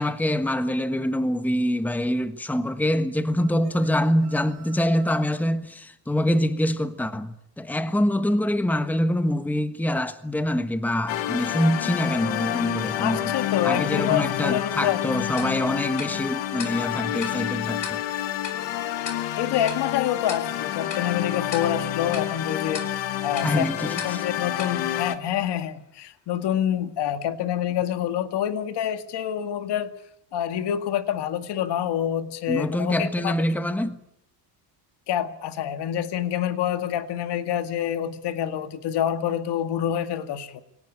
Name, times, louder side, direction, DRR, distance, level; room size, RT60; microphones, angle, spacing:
voice 1, 0.0-13.3 13.6-18.0 23.4-24.2 32.5-34.0, left 1 dB, 5° left, 1.4 m, -25 dB
sound 1, 3.3-5.4, right 5 dB, 35° right, 5.7 m, -49 dB
sound 2, 11.1-25.2, left 12 dB, 80° left, 2.0 m, -29 dB
voice 2, 13.0-15.0 19.4-29.9 30.3-33.3 35.1-40.6, left 10 dB, 65° left, 2.1 m, -27 dB
Tick-tock, 15.4-25.8, left 5 dB, 45° left, 4.2 m, -42 dB
26.0 x 18.0 x 9.9 m
cardioid pair, 130°, 44 cm